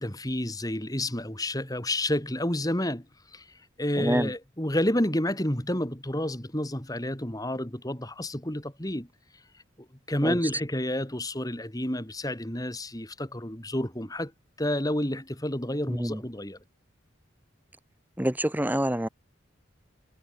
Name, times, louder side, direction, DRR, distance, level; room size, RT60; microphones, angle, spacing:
voice 1, 0.0-3.0 3.3-3.4 3.8-9.1 10.1-14.3 14.6-16.6, left 1 dB, 20° left, 3.4 m, -30 dB
voice 2, 4.0-4.3 10.2-10.5 15.9-16.2 18.2-19.1, right 1 dB, 10° right, 1.6 m, -27 dB
head